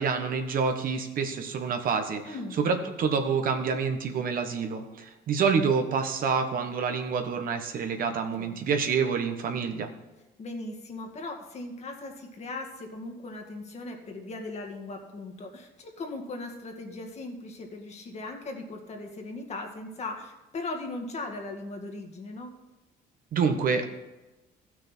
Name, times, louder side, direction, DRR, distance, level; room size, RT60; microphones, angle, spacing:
voice 1, 0.0-9.9 23.3-23.8, right 5 dB, 55° right, 5 dB, 1.4 m, -27 dB
voice 2, 2.2-2.6 8.1-8.6 10.4-22.5, left 2 dB, 40° left, 3 dB, 2.0 m, -38 dB
15.0 x 6.4 x 4.5 m, 1.1 s
cardioid pair, 110°, 17 cm